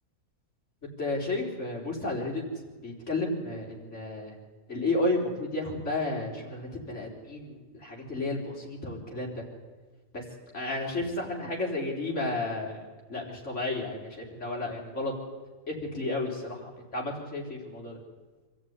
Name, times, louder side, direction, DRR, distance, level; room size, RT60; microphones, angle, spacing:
voice 1, 1.0-2.4 2.8-4.3 4.7-9.4 10.1-10.2 10.5-12.8 13.1-15.1 15.7-18.0, left 2 dB, 55° left, -2 dB, 4.8 m, -32 dB
26.0 x 14.0 x 9.7 m, 1.3 s
omnidirectional pair, 1.5 m